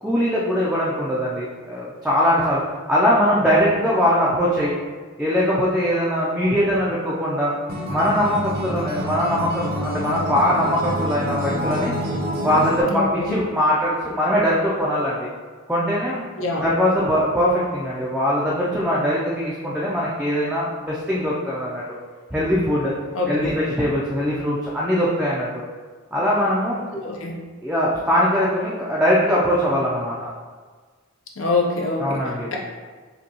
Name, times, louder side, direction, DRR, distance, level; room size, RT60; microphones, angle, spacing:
voice 1, 0.0-2.6 2.9-4.7 5.2-7.5 7.9-11.9 12.4-15.3 15.7-16.3 16.6-21.8 22.3-22.9 23.3-25.5 26.1-26.8 27.6-30.3 32.0-32.5, equal, 5° right, -7 dB, 0.4 m, -21 dB
Acoustic guitar, 7.7-12.8, equal, 45° right, 0.6 m, -27 dB
voice 2, 12.9-13.4 16.4-16.7 23.1-23.6 26.9-27.4 31.4-32.2, left 3 dB, 70° left, -1 dB, 0.7 m, -25 dB
5.1 x 2.3 x 2.8 m, 1.5 s
head